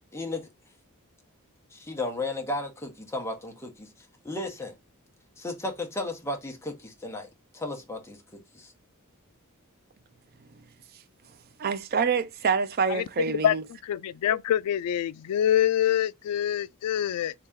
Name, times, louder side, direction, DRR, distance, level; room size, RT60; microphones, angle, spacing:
voice 1, 0.1-0.5 1.7-3.9 4.2-4.7 5.4-8.7, left 2 dB, 10° left, 0.9 m, -34 dB
voice 2, 11.6-13.6, right 5 dB, 45° right, 0.5 m, -26 dB
voice 3, 13.9-17.3, left 10 dB, 90° left, 0.3 m, -25 dB
3.9 x 2.8 x 3.6 m
head